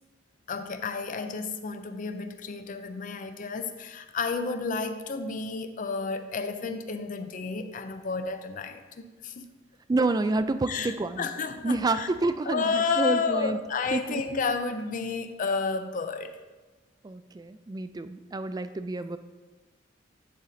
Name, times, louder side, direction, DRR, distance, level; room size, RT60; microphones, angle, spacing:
voice 1, 0.5-9.5 10.7-12.1 12.4-16.3, left 4 dB, 45° left, 0.5 m, -31 dB
voice 2, 9.9-11.3 11.6-13.6 13.9-14.2 17.0-19.2, right 2 dB, 20° right, 0.3 m, -28 dB
10.0 x 4.2 x 3.9 m
head